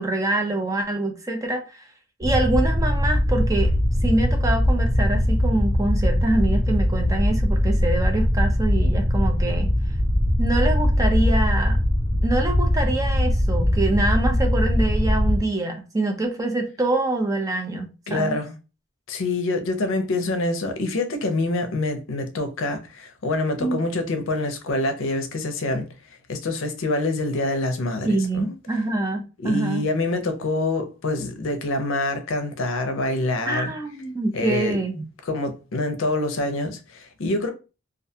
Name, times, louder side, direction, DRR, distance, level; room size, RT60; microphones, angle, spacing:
voice 1, 0.0-1.9 2.2-3.7 4.0-9.7 10.4-11.8 12.2-18.4 23.6-23.8 28.0-29.9 33.5-35.0, right 2 dB, 15° right, 0.4 m, -25 dB
sound 1, 2.2-15.4, left 1 dB, 55° right, 1.1 m, -21 dB
voice 2, 18.1-18.6 19.1-25.9 26.3-28.1 28.3-28.5 29.4-33.7 34.3-34.8 35.2-37.5, left 2 dB, 75° left, 0.5 m, -26 dB
2.4 x 2.2 x 2.7 m
head